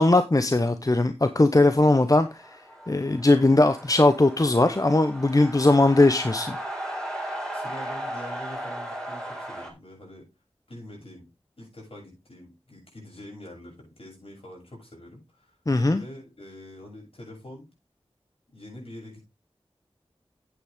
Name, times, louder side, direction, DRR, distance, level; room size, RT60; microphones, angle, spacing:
voice 1, 0.0-2.5 2.9-6.6 15.7-16.0, left 2 dB, 35° left, 0.8 m, -20 dB
sound 1, 2.0-9.7, right 1 dB, 5° left, 4.0 m, -36 dB
voice 2, 7.5-10.3 10.7-11.3 11.6-15.6 16.0-17.7 18.5-19.3, left 1 dB, 65° left, 7.6 m, -44 dB
9.9 x 8.7 x 3.6 m
wide cardioid pair, 50°, 10 cm